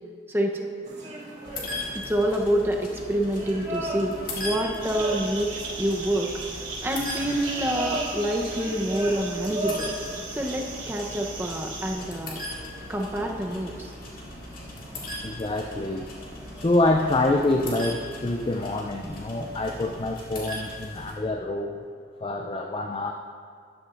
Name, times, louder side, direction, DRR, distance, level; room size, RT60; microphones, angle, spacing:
voice 1, 0.3-0.6 1.9-9.9 10.3-12.4 12.9-13.9, right 1 dB, 10° right, 1 dB, 0.8 m, -27 dB
sound 1, 0.8-19.9, right 2 dB, 35° right, 2.1 m, -39 dB
sound 2, 1.4-21.1, left 1 dB, 50° left, 2.0 m, -39 dB
sound 3, 4.8-12.0, right 4 dB, 80° right, 3.0 m, -37 dB
voice 2, 15.2-16.1 16.6-21.8 22.2-23.1, left 2 dB, 25° left, 4 dB, 0.4 m, -26 dB
14.0 x 11.5 x 2.5 m, 2.2 s
head